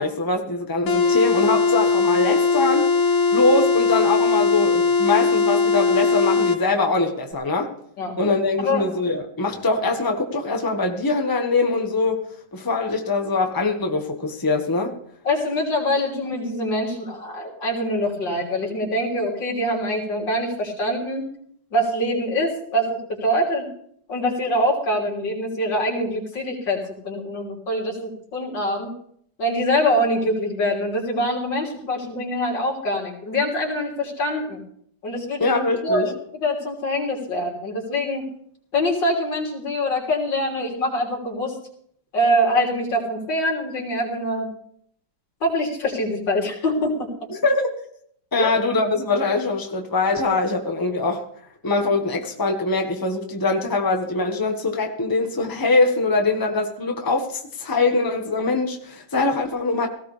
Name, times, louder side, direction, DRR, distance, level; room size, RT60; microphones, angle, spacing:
voice 1, 0.0-2.9 3.3-7.7 8.2-14.9 35.4-36.1 47.3-47.7 48.3-51.2 51.6-59.9, left 3 dB, 10° left, 3 dB, 1.4 m, -23 dB
sound 1, 0.9-6.6, left 4 dB, 50° left, 1.3 m, -19 dB
voice 2, 15.2-21.2 21.7-23.7 24.1-26.8 27.0-28.9 29.4-34.6 35.0-36.1 36.4-38.2 38.7-41.5 42.1-44.5 45.4-47.1 48.4-48.5, equal, 75° left, -1 dB, 4.0 m, -24 dB
18.0 x 15.5 x 3.4 m, 0.66 s
omnidirectional pair, 2.0 m